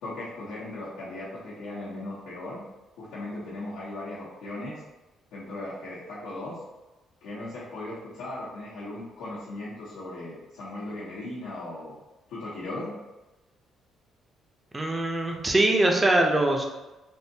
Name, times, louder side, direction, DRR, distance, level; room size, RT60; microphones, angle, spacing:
voice 1, 0.0-2.6 3.0-4.8 5.3-6.6 7.2-12.0 12.3-13.0, left 2 dB, 90° left, -11 dB, 0.9 m, -37 dB
voice 2, 14.7-16.6, right 2 dB, 20° right, 2 dB, 0.5 m, -22 dB
3.5 x 2.6 x 2.7 m, 1.1 s
cardioid pair, 110°, 0 cm